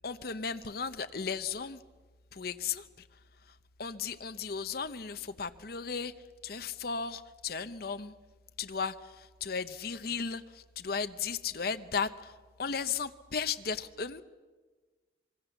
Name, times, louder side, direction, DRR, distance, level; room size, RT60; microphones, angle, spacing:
voice 1, 0.0-1.8 2.3-8.2 8.6-14.2, left 5 dB, 55° left, 11 dB, 0.8 m, -36 dB
26.0 x 24.0 x 7.1 m, 1.4 s
head